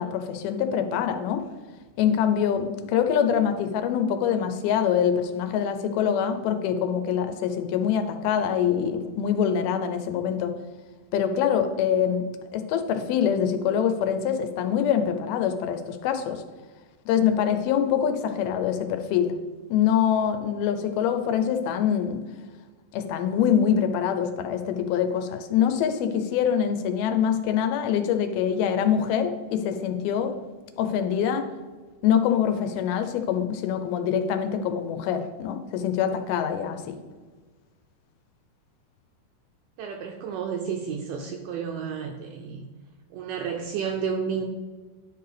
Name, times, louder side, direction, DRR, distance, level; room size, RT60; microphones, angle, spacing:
voice 1, 0.0-1.4 2.0-10.5 11.1-12.2 12.5-16.4 17.1-19.4 19.7-22.2 22.9-30.4 30.8-31.5 32.0-37.0, left 8 dB, 85° left, 8 dB, 2.5 m, -24 dB
voice 2, 39.8-42.6 43.1-44.4, right 6 dB, 85° right, 3 dB, 1.9 m, -31 dB
9.8 x 4.7 x 3.3 m, 1.3 s
omnidirectional pair, 4.3 m